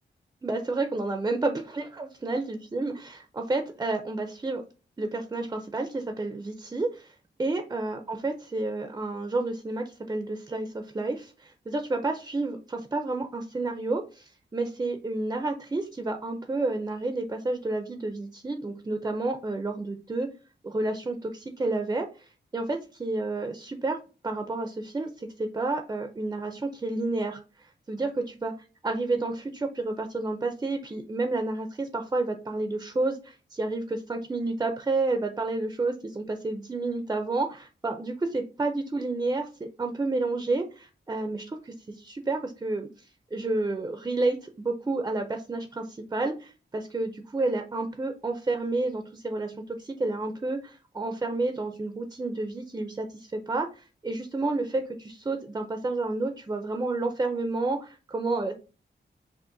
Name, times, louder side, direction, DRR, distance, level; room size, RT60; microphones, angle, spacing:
voice 1, 0.4-4.6 5.0-7.1 7.4-20.3 20.6-24.0 24.2-27.4 27.9-28.5 28.8-42.9 43.3-58.5, right 2 dB, 20° right, 5 dB, 0.4 m, -30 dB
6.2 x 2.5 x 2.6 m, 0.34 s
wide cardioid pair, 155°, 19 cm